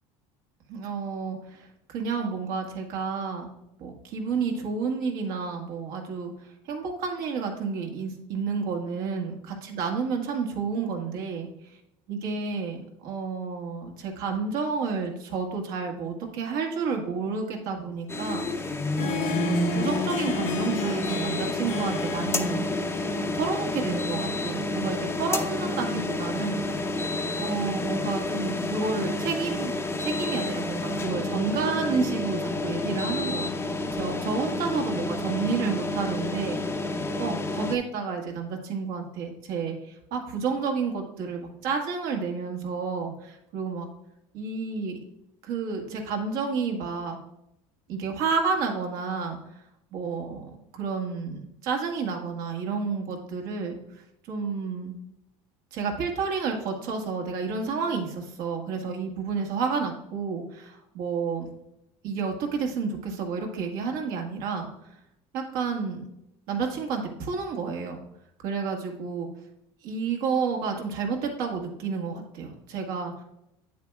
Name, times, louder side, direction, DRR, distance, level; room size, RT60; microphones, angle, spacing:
voice 1, 0.7-3.5 3.8-11.5 12.1-22.6 23.2-26.8 27.4-29.7 30.0-43.9 44.3-45.0 45.4-47.2 47.9-49.4 49.9-54.0 54.3-55.0 55.7-61.5 62.0-64.7 65.3-66.1 66.5-68.0 68.4-69.3 69.8-73.2, right 5 dB, 70° right, 2 dB, 1.6 m, -30 dB
sound 1, 18.1-37.8, left 2 dB, 15° left, 0.8 m, -29 dB
Harp, 18.7-26.4, left 6 dB, 60° left, 1.0 m, -38 dB
8.5 x 7.4 x 2.4 m, 0.81 s
supercardioid pair, 90°, 16 cm